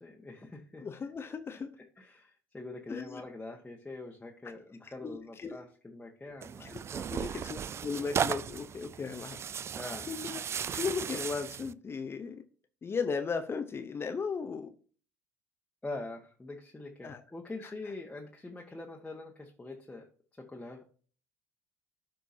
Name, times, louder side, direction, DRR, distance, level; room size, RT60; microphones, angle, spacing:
voice 1, 0.0-0.8 2.0-7.1 9.7-10.1 15.8-20.0 20.5-20.8, left 2 dB, 15° left, 1.4 m, -44 dB
voice 2, 0.8-1.7 2.9-3.2 4.4-4.5 4.8-5.6 6.6-6.8 7.1-9.4 10.1-10.4 10.7-12.4 12.8-14.7 17.0-17.2 17.6-17.7, left 5 dB, 30° left, 0.8 m, -36 dB
Tearing, 6.4-11.7, right 8 dB, 35° right, 0.3 m, -36 dB
12.5 x 4.6 x 2.7 m
hypercardioid pair, 70°, 8 cm